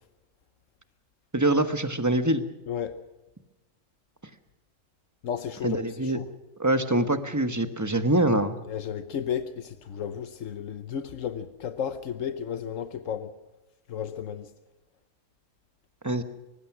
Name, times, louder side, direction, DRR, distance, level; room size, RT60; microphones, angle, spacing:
voice 1, 1.3-2.5 5.6-6.2 6.6-8.6 16.0-16.2, right 1 dB, 15° right, 1.2 m, -24 dB
voice 2, 2.7-3.0 5.2-6.2 8.7-13.3 13.9-14.5, left 8 dB, 85° left, 1.3 m, -33 dB
24.0 x 19.5 x 6.1 m
omnidirectional pair, 1.3 m